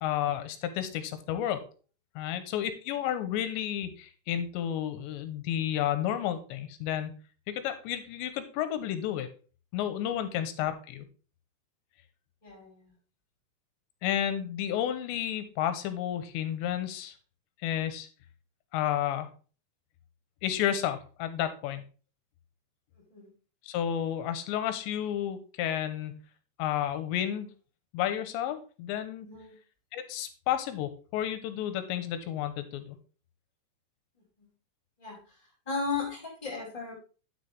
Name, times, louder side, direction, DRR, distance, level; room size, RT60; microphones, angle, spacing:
voice 1, 0.0-1.6 2.2-7.2 7.5-9.3 9.7-11.1 14.0-17.1 17.6-18.1 18.7-19.3 20.4-21.8 23.6-26.2 26.6-27.5 27.9-29.3 29.9-33.0, left 10 dB, 85° left, 10 dB, 3.2 m, -31 dB
voice 2, 12.4-12.9 23.1-23.3 29.2-29.5 34.4-34.5 35.0-35.2 35.6-36.9, left 4 dB, 5° left, -5 dB, 4.9 m, -36 dB
9.3 x 8.2 x 3.4 m, 0.37 s
omnidirectional pair, 5.1 m